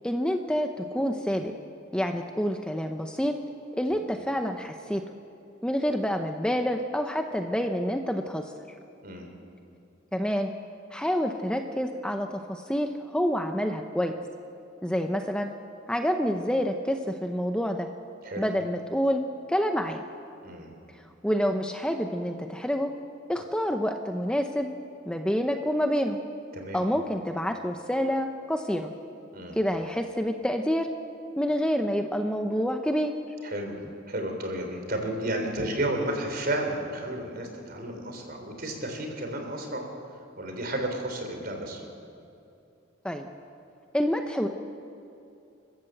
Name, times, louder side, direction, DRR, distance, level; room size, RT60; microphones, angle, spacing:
voice 1, 0.0-1.5 1.9-3.4 3.7-5.0 5.6-8.5 10.1-10.5 10.9-14.1 14.8-15.5 15.9-17.9 18.4-19.2 19.5-20.0 21.2-22.9 23.3-24.7 25.1-26.2 26.7-28.9 29.5-30.9 31.4-33.1 43.0-43.3 43.9-44.5, equal, 5° left, 5 dB, 0.7 m, -27 dB
voice 2, 33.4-33.7 34.1-39.8 40.4-41.8, right 1 dB, 50° right, 4 dB, 3.8 m, -32 dB
30.0 x 13.5 x 7.8 m, 2.6 s
head